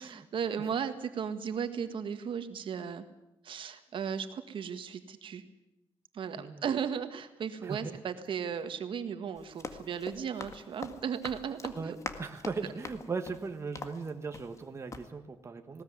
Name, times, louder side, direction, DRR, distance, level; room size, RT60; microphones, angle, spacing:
voice 1, 0.1-3.1 3.4-5.4 6.1-12.0, right 7 dB, 65° right, 9 dB, 1.7 m, -36 dB
voice 2, 7.6-8.0 11.7-15.8, right 4 dB, 30° right, 6 dB, 1.5 m, -38 dB
Run, 9.3-14.6 14.9-15.1, left 4 dB, 30° left, 1.9 m, -44 dB
20.0 x 18.0 x 9.6 m, 0.88 s
wide cardioid pair, 140°, 10 cm